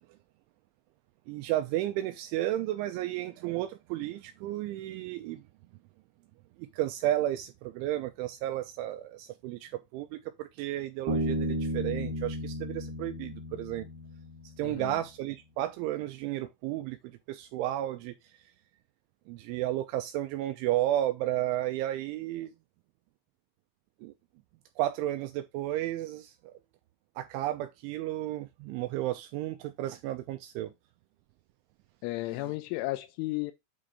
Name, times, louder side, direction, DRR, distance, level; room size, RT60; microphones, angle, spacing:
voice 1, 1.3-5.4 6.6-13.9 14.4-18.1 19.3-22.5 24.0-24.1 24.8-26.6 27.2-30.7 32.4-32.5, right 14 dB, 85° right, 2.9 m, -33 dB
Bass guitar, 11.1-14.6, equal, 40° right, 1.6 m, -33 dB
voice 2, 14.6-14.9 32.0-33.5, left 19 dB, 80° left, 2.9 m, -33 dB
8.8 x 3.9 x 4.8 m
omnidirectional pair, 5.8 m